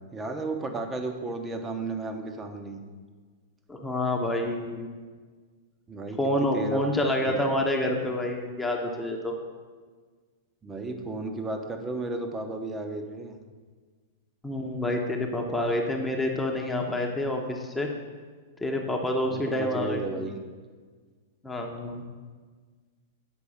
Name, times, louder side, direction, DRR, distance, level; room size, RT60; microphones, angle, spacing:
voice 1, 0.1-2.8 5.9-6.8 7.2-7.4 10.6-13.4 19.3-20.4, right 2 dB, 15° right, 5 dB, 1.1 m, -33 dB
voice 2, 3.7-4.9 6.2-9.3 14.4-17.9 18.6-20.0 21.4-22.0, left 1 dB, 10° left, 1 dB, 1.1 m, -28 dB
7.9 x 5.2 x 6.6 m, 1.5 s
figure-of-eight pair, 100°, 0 cm